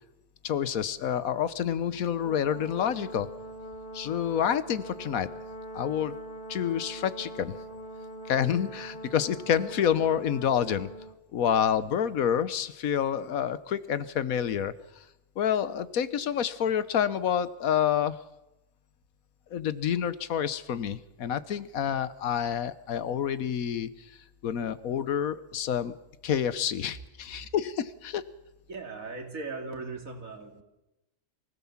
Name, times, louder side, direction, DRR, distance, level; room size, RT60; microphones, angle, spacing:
voice 1, 0.4-3.3 3.9-5.3 5.7-6.1 6.5-7.6 8.3-10.9 11.3-14.7 15.4-18.2 19.5-24.1 24.4-25.9 26.2-28.2, left 9 dB, 85° left, 15 dB, 1.4 m, -28 dB
Brass instrument, 2.2-11.2, right 1 dB, 35° left, 2.2 m, -42 dB
voice 2, 28.7-30.6, right 3 dB, 75° right, 4 dB, 3.0 m, -38 dB
24.0 x 16.5 x 7.3 m, 0.95 s
omnidirectional pair, 1.4 m